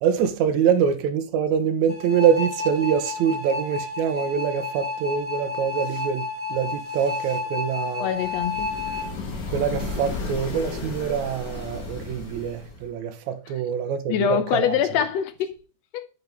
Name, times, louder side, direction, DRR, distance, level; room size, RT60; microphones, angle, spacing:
voice 1, 0.0-8.1 9.5-15.1, right 8 dB, 75° right, 2.2 m, -25 dB
sound 1, 1.9-9.1, left 4 dB, 5° left, 1.4 m, -31 dB
voice 2, 8.0-8.7 14.1-15.6 15.9-16.1, left 9 dB, 80° left, 1.6 m, -24 dB
sound 2, 8.2-12.9, left 3 dB, 45° left, 1.2 m, -34 dB
8.6 x 5.3 x 3.5 m
omnidirectional pair, 3.4 m